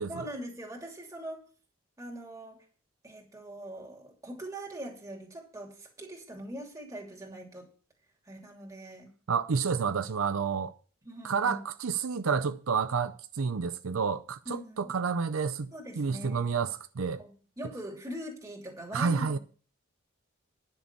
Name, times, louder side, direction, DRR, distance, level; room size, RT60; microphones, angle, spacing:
voice 1, 0.1-1.4 2.0-2.6 3.0-7.7 8.2-9.1 11.0-11.6 14.4-14.9 15.7-16.6 17.2-19.4, right 1 dB, 15° right, 2.8 m, -42 dB
voice 2, 9.3-10.7 11.2-17.2 18.9-19.4, right 5 dB, 85° right, 0.6 m, -30 dB
10.5 x 6.7 x 6.8 m
head